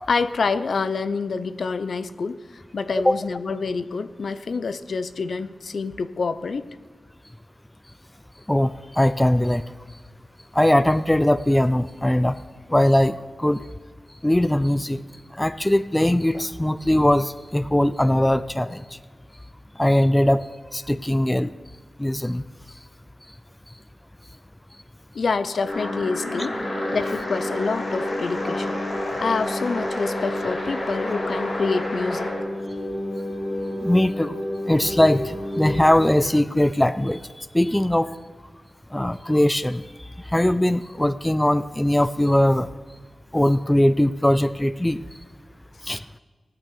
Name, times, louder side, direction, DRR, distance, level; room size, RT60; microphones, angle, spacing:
voice 1, 0.1-6.7 25.1-26.6 26.9-28.8 29.2-32.3, left 4 dB, 60° left, 13 dB, 0.6 m, -27 dB
voice 2, 8.5-9.6 10.5-12.4 12.7-13.6 14.2-15.0 15.4-18.8 19.8-20.5 20.7-21.5 22.0-22.4 26.4-26.5 33.8-34.3 34.7-38.1 38.9-39.8 40.3-42.7 43.3-45.0 45.8-46.0, left 1 dB, 10° left, 14 dB, 0.3 m, -20 dB
sound 1, 25.6-35.9, left 1 dB, 85° left, 5.5 m, -31 dB
sound 2, 25.7-32.4, left 1 dB, 40° left, 4.5 m, -31 dB
16.0 x 9.4 x 6.8 m, 1.4 s
wide cardioid pair, 135°, 0 cm